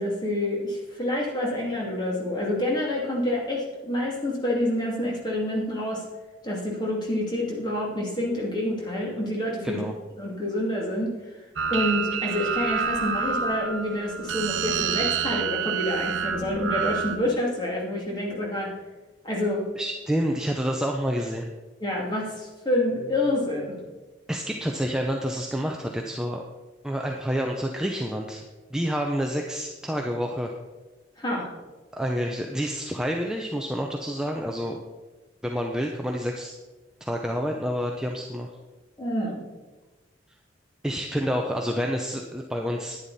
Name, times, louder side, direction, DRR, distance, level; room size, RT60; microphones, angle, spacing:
voice 1, 0.0-6.1 6.4-9.9 10.2-11.2 11.7-18.7 19.2-19.7 21.8-23.8 31.2-31.5 39.0-39.4, left 1 dB, 20° left, -2 dB, 2.5 m, -27 dB
sound 1, 11.6-17.2, right 6 dB, 85° right, 0.8 m, -28 dB
voice 2, 19.8-21.5 24.3-26.4 26.8-28.4 28.7-30.5 31.9-34.8 35.4-36.5 37.0-38.5 40.8-43.0, equal, 5° right, 1 dB, 0.6 m, -28 dB
10.5 x 10.0 x 4.2 m, 1.2 s
head